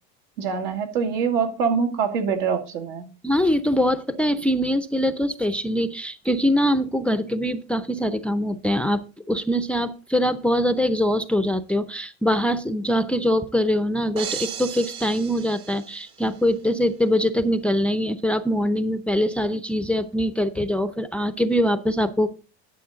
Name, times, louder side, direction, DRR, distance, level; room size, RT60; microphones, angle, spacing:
voice 1, 0.4-3.1, right 6 dB, 70° right, 2.2 m, -24 dB
voice 2, 3.2-9.0 9.3-22.3, equal, 5° left, 0.6 m, -23 dB
sound 1, 14.2-16.4, right 9 dB, 55° right, 1.9 m, -35 dB
11.5 x 6.9 x 3.9 m
supercardioid pair, 110°, 34 cm